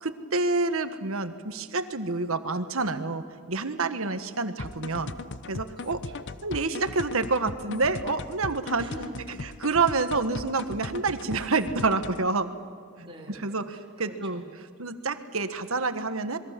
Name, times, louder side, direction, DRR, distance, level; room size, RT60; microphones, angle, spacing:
voice 1, 0.0-5.1 5.5-6.0 6.4-8.9 9.6-12.5 13.4-13.7 14.0-14.4 14.8-16.4, right 3 dB, 65° right, 9 dB, 1.5 m, -28 dB
sound 1, 4.6-12.3, left 3 dB, 55° left, 0.9 m, -38 dB
voice 2, 5.8-6.4 8.8-9.4 12.9-14.5, right 1 dB, 25° right, -2 dB, 3.6 m, -45 dB
27.0 x 22.0 x 7.7 m, 2.2 s
head